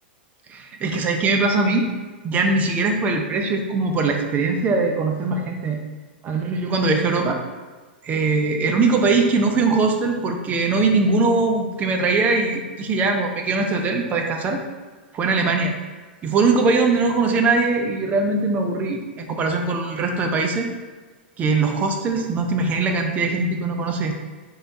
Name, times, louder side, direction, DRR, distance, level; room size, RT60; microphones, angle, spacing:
voice 1, 0.5-1.9 2.2-5.8 6.2-7.4 8.0-14.6 15.1-15.7 16.2-20.7 21.4-24.1, right 3 dB, 25° right, 4 dB, 0.6 m, -21 dB
3.9 x 3.4 x 4.0 m, 1.4 s
hypercardioid pair, 115°, 6 cm